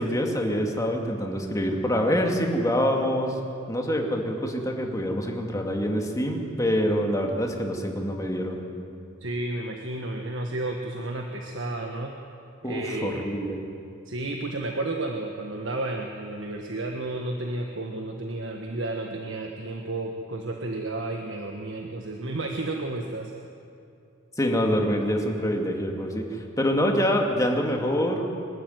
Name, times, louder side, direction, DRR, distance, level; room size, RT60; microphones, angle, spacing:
voice 1, 0.0-3.4 3.7-8.6 12.6-13.6 24.4-26.2 26.6-28.5, equal, 15° left, 1 dB, 2.3 m, -25 dB
voice 2, 9.2-12.1 12.6-13.3 14.0-23.3, right 2 dB, 75° right, 2 dB, 1.5 m, -32 dB
24.0 x 12.5 x 9.5 m, 2.5 s
head